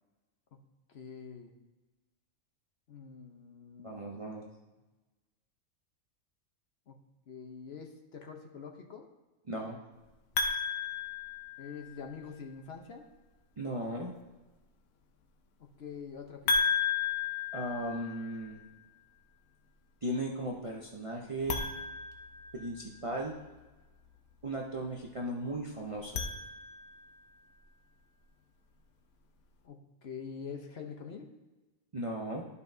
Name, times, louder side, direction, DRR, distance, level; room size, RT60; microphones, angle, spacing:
voice 1, 0.9-1.5 2.9-4.5 6.9-7.0 7.3-9.1 11.6-13.0 15.6-16.8 29.6-31.3, left 6 dB, 55° left, 4 dB, 0.9 m, -45 dB
voice 2, 3.8-4.4 9.5-9.8 13.6-14.1 17.5-18.6 20.0-21.7 22.5-23.4 24.4-26.2 31.9-32.5, right 1 dB, 35° right, -1 dB, 0.6 m, -36 dB
sound 1, 10.4-12.1 16.5-18.5 21.4-23.0 25.9-27.1, left 5 dB, 80° left, 1.2 m, -33 dB
12.5 x 5.4 x 2.7 m, 1.2 s
omnidirectional pair, 1.4 m